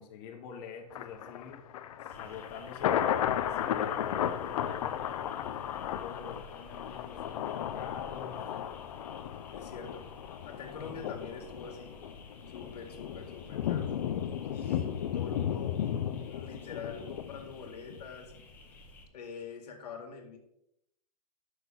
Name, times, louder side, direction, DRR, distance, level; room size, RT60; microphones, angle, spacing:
voice 1, 0.0-1.6 2.2-5.5 5.9-8.5, left 6 dB, 30° left, 1 dB, 1.0 m, -46 dB
Thunder, 0.9-18.0 18.4-18.5, left 10 dB, 60° left, 0.6 m, -35 dB
voice 2, 2.0-2.4 7.6-7.9 9.5-10.2 10.5-12.0 12.5-14.0 14.5-15.8 16.3-18.3 19.1-20.4, left 5 dB, 90° left, 2 dB, 1.9 m, -45 dB
sound 1, 2.1-19.1, left 1 dB, 10° left, 0.9 m, -54 dB
6.3 x 6.1 x 5.3 m, 0.80 s
supercardioid pair, 170°, 20 cm